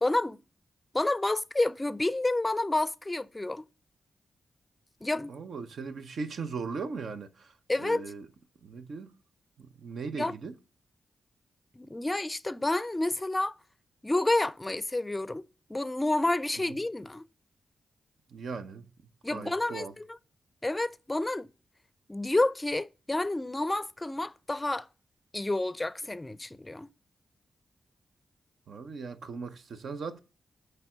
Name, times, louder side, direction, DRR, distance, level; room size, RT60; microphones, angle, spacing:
voice 1, 0.0-0.4 0.9-3.6 5.0-5.3 7.7-8.0 10.1-10.3 11.8-13.6 14.0-17.2 19.2-20.0 20.6-21.5 22.1-24.9 25.3-26.9, left 2 dB, 20° left, 0.4 m, -29 dB
voice 2, 5.3-7.5 7.8-8.3 8.6-9.1 9.6-10.5 16.7-16.8 18.3-18.9 19.3-19.9 28.7-30.2, right 4 dB, 75° right, 0.7 m, -38 dB
8.1 x 3.4 x 4.9 m
cardioid pair, 70°, 0 cm